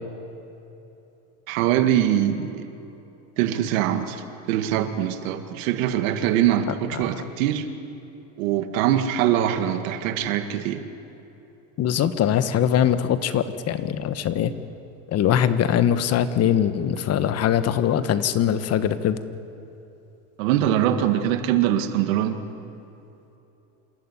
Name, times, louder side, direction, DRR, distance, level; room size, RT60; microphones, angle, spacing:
voice 1, 1.5-2.7 3.4-7.7 8.4-10.8 20.4-22.4, right 11 dB, 85° right, 8 dB, 2.0 m, -23 dB
voice 2, 6.9-7.2 11.8-14.5 15.1-19.2, left 9 dB, 40° left, 12 dB, 1.3 m, -22 dB
27.5 x 13.5 x 9.8 m, 3.0 s
supercardioid pair, 135°, 39 cm